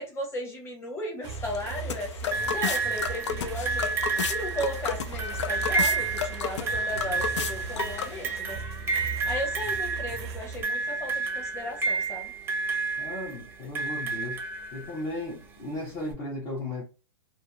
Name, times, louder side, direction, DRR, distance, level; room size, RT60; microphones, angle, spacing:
voice 1, 0.0-3.9 4.3-8.6 9.3-12.3, left 1 dB, 15° left, 1.0 m, -36 dB
sound 1, 1.2-8.4, left 8 dB, 80° left, 0.4 m, -34 dB
sound 2, 1.2-10.6, right 5 dB, 65° right, 0.5 m, -38 dB
sound 3, 2.3-15.1 16.1-16.2, right 4 dB, 15° right, 0.6 m, -31 dB
voice 2, 13.0-14.4 14.7-16.8, left 1 dB, 35° left, 0.7 m, -35 dB
2.7 x 2.0 x 2.3 m
hypercardioid pair, 135°, 15 cm